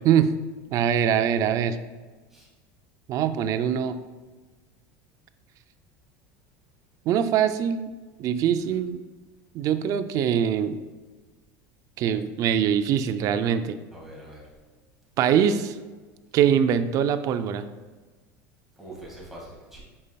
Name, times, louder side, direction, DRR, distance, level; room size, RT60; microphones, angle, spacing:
voice 1, 0.7-1.8 3.1-4.0 7.1-7.9 8.2-9.0 9.5-10.8 12.0-13.8 15.2-15.8 16.3-17.7, right 8 dB, 45° right, 11 dB, 0.4 m, -23 dB
voice 2, 13.9-14.4 18.8-19.8, right 1 dB, 5° right, -5 dB, 1.9 m, -43 dB
8.5 x 5.3 x 2.3 m, 1.3 s
supercardioid pair, 140°, 8 cm